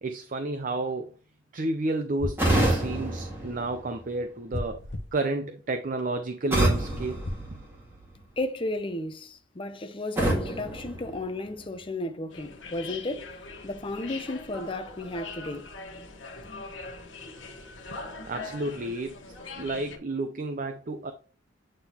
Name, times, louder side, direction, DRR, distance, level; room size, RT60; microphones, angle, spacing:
voice 1, 0.0-1.1 1.5-4.8 5.1-7.2 18.3-19.1 19.5-21.1, right 2 dB, 45° right, 0.6 m, -31 dB
sound 1, 2.2-2.8 4.5-5.1 6.9-7.4, left 1 dB, 60° left, 0.8 m, -34 dB
sound 2, 2.4-4.3 6.5-8.2 10.2-11.8, right 1 dB, 10° right, 1.8 m, -28 dB
voice 2, 8.4-13.3 13.6-15.7, left 2 dB, 25° left, 0.6 m, -33 dB
sound 3, 12.3-20.0, left 3 dB, 75° left, 1.4 m, -42 dB
8.8 x 3.8 x 2.9 m
head